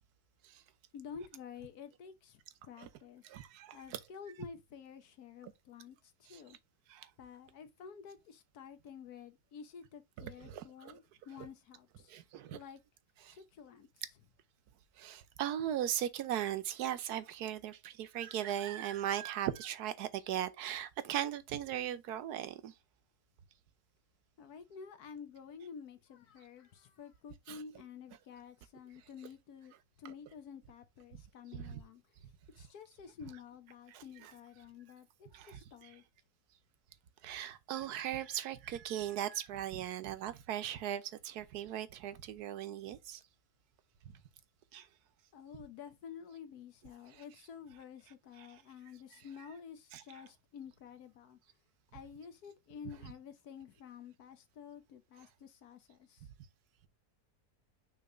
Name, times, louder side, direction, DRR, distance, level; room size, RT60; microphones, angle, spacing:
voice 1, 0.9-3.3 3.7-6.6 7.2-12.1 12.5-12.8 13.3-14.0 24.4-32.0 32.6-36.0 45.3-51.4 51.9-56.3, left 7 dB, 75° left, 1.4 m, -51 dB
voice 2, 3.2-4.0 5.4-5.5 6.3-6.4 6.9-7.1 10.2-10.9 12.1-12.6 13.3-13.4 15.0-22.7 27.5-27.6 31.1-31.2 31.5-31.8 33.9-34.3 35.3-35.9 37.2-43.2 44.7-44.9 49.9-50.0, right 11 dB, 80° right, 1.3 m, -38 dB
6.2 x 3.1 x 5.4 m
omnidirectional pair, 1.7 m